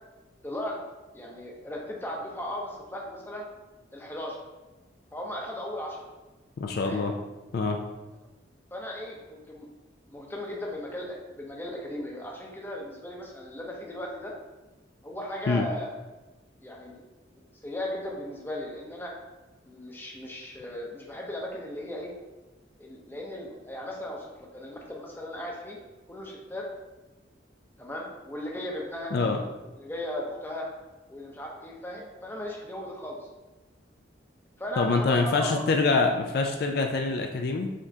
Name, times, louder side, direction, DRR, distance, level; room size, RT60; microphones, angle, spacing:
voice 1, 0.4-0.8 1.1-3.5 3.9-4.4 5.1-6.1 6.8-7.0 8.7-9.7 10.1-14.3 15.0-15.9 16.6-17.0 17.6-19.1 19.7-22.1 22.8-25.8 26.1-26.7 27.8-29.1 29.8-30.7 31.1-33.3 34.6-35.8, left 1 dB, 10° left, -1 dB, 0.6 m, -37 dB
voice 2, 6.6-7.1 7.5-7.8 15.5-15.6 29.1-29.4 34.8-37.7, left 3 dB, 55° left, 3 dB, 0.3 m, -25 dB
5.1 x 3.6 x 2.7 m, 1.1 s
head